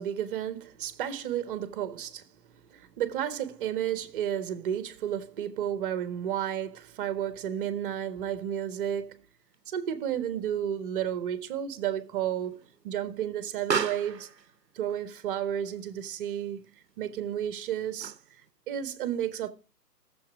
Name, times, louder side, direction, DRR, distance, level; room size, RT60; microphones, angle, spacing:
voice 1, 0.0-2.3 2.7-9.2 9.7-14.3 14.7-16.6 17.0-18.1 18.7-19.5, right 10 dB, 35° right, 1.5 m, -32 dB
Explosion, 9.5-18.5, right 6 dB, 85° right, 0.9 m, -40 dB
17.5 x 7.5 x 4.8 m
figure-of-eight pair, 130°, 48 cm